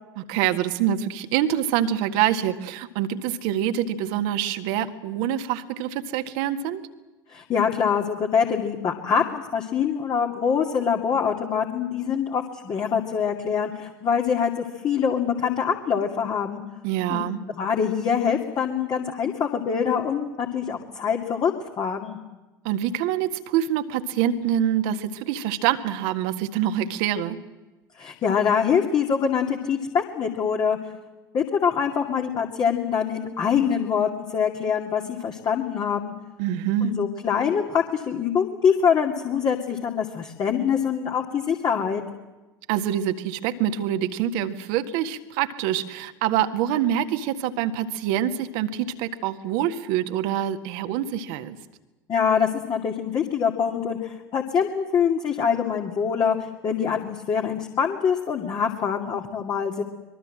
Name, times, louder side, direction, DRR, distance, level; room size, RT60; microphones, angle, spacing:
voice 1, 0.2-6.8 16.8-17.4 22.6-27.4 36.4-36.9 42.7-51.6, right 10 dB, 55° right, 8 dB, 1.7 m, -25 dB
voice 2, 7.3-16.6 17.1-17.3 17.6-21.5 21.8-22.2 28.0-30.8 31.3-36.1 36.8-42.0 52.1-59.8, left 7 dB, 35° left, 1 dB, 2.4 m, -24 dB
25.0 x 22.5 x 7.7 m, 1.1 s
figure-of-eight pair, 65°, 12 cm